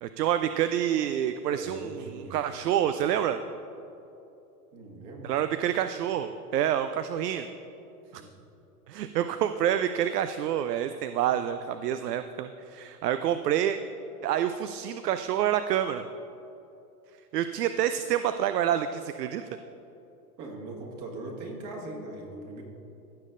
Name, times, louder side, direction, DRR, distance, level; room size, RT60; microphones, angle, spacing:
voice 1, 0.0-3.4 5.2-7.5 8.1-8.2 8.9-13.8 14.2-16.0 17.3-19.5, right 10 dB, 80° right, 10 dB, 0.5 m, -28 dB
voice 2, 1.5-2.6 4.7-5.3 8.1-8.3 20.4-22.6, right 2 dB, 40° right, 0 dB, 1.6 m, -40 dB
15.0 x 6.6 x 2.5 m, 2.9 s
hypercardioid pair, 120°, 47 cm